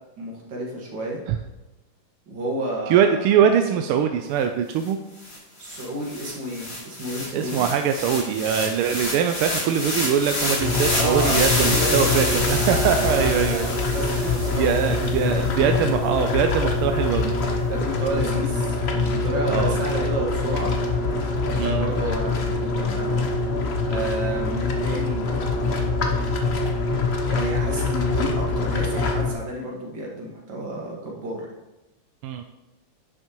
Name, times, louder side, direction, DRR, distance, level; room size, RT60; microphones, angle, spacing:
voice 1, 0.2-1.2 2.3-3.4 5.6-7.7 10.9-14.6 14.9-15.9 17.7-20.7 21.5-23.2 23.8-25.7 27.3-31.4, right 1 dB, 60° right, -3 dB, 2.5 m, -31 dB
voice 2, 2.9-5.0 7.3-13.7 14.6-17.3 19.5-19.8 21.6-21.9 32.2-32.4, right 8 dB, 90° right, 6 dB, 1.5 m, -22 dB
sound 1, 4.9-5.0 5.2-15.6, left 1 dB, 60° left, 3.6 m, -28 dB
sound 2, 10.6-29.3, left 3 dB, 85° left, 0.5 m, -24 dB
10.0 x 6.5 x 3.0 m, 1.0 s
omnidirectional pair, 2.3 m